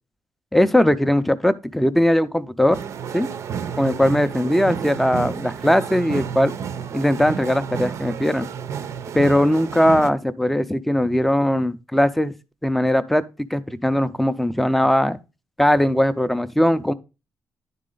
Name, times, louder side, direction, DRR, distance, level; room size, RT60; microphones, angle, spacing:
voice 1, 0.5-2.8 3.1-3.3 3.8-6.5 6.9-8.5 9.1-12.3 12.6-13.2 13.5-15.2 15.6-16.9, left 1 dB, ahead, 0.4 m, -19 dB
sound 1, 2.7-10.1, right 7 dB, 55° right, 0.6 m, -31 dB
10.5 x 4.2 x 3.8 m
wide cardioid pair, 170°, 6 cm